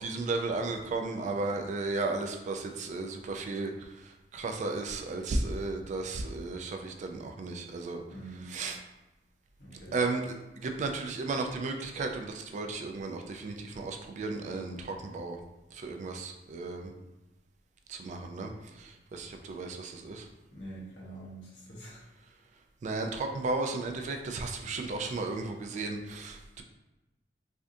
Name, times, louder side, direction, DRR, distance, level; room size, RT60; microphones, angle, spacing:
voice 1, 0.0-3.9 4.3-8.0 8.5-8.8 9.9-10.3 10.6-15.4 15.7-16.9 17.9-18.5 18.8-20.3 22.8-26.6, right 3 dB, 45° right, 4 dB, 0.3 m, -34 dB
voice 2, 8.1-8.5 9.6-10.0 20.5-22.0, right 1 dB, 80° left, -6 dB, 1.0 m, -45 dB
3.3 x 2.4 x 2.6 m, 1.0 s
head